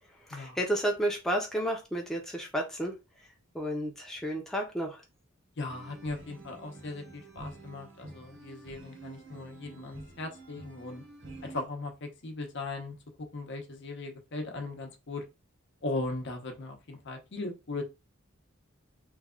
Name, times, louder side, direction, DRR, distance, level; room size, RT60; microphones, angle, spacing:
voice 1, 0.3-2.9 3.5-5.0, right 1 dB, ahead, 0 dB, 0.6 m, -31 dB
voice 2, 5.6-11.0 11.4-13.0 13.3-15.2 15.8-17.8, left 2 dB, 60° left, 3 dB, 0.8 m, -38 dB
sound 1, 5.7-11.7, right 2 dB, 60° right, 0.9 m, -48 dB
3.1 x 2.3 x 3.6 m, 0.26 s
head